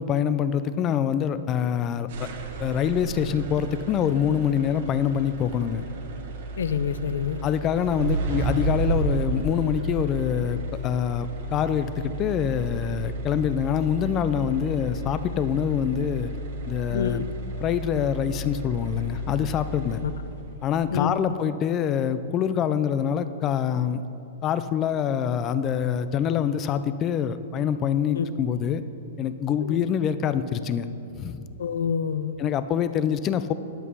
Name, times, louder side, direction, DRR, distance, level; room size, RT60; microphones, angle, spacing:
voice 1, 0.0-2.3 2.6-5.8 7.4-16.3 16.7-17.2 17.6-20.0 20.6-24.0 24.4-28.8 29.2-30.9 31.2-31.4 32.4-33.5, left 8 dB, 20° left, 12 dB, 0.3 m, -25 dB
sound 1, 2.1-20.4, right 2 dB, 45° right, 1.0 m, -33 dB
voice 2, 6.6-7.4 16.9-17.2 20.0-20.1 20.9-21.1 28.2-28.3 29.6-29.8 31.6-32.3, left 7 dB, 85° left, 12 dB, 0.5 m, -27 dB
11.0 x 8.1 x 5.4 m, 2.9 s
hypercardioid pair, 175°, 0 cm